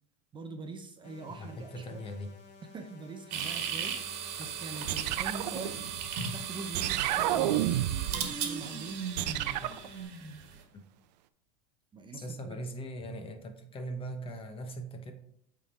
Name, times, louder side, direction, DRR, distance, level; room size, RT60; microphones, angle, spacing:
voice 1, 0.3-2.0 2.7-5.9 6.3-9.0 11.9-12.6, right 4 dB, 20° right, 6 dB, 0.6 m, -43 dB
sound 1, 1.0-10.0, left 5 dB, 70° left, 1.3 m, -55 dB
voice 2, 1.3-2.3 10.7-10.8 12.1-15.1, right 1 dB, 25° left, 6 dB, 1.0 m, -40 dB
sound 2, 3.3-10.6, right 7 dB, 60° right, 1.4 m, -37 dB
sound 3, 4.9-6.2 6.7-8.3 9.2-9.9, right 13 dB, 80° right, 0.5 m, -30 dB
8.1 x 3.7 x 4.2 m, 0.72 s
supercardioid pair, 120°, 21 cm